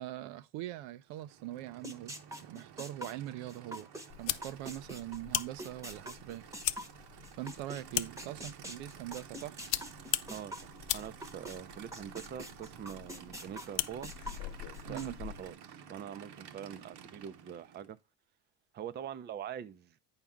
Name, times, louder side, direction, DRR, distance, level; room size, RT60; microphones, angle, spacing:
voice 1, 0.0-2.1 2.5-3.9 4.2-6.5 7.3-9.6 14.8-15.2, right 14 dB, 85° right, 0.8 m, -42 dB
Aircraft / Idling, 1.0-18.0, right 8 dB, 60° right, 1.0 m, -53 dB
sound 1, 1.8-7.8 8.2-11.6 11.9-15.1, equal, 5° right, 0.9 m, -44 dB
sound 2, 4.1-15.5, left 15 dB, 70° left, 0.7 m, -40 dB
voice 2, 10.3-14.1 14.8-18.0 18.7-20.0, right 9 dB, 25° right, 0.4 m, -44 dB
8.9 x 5.6 x 3.6 m
cardioid pair, 140°, 45 cm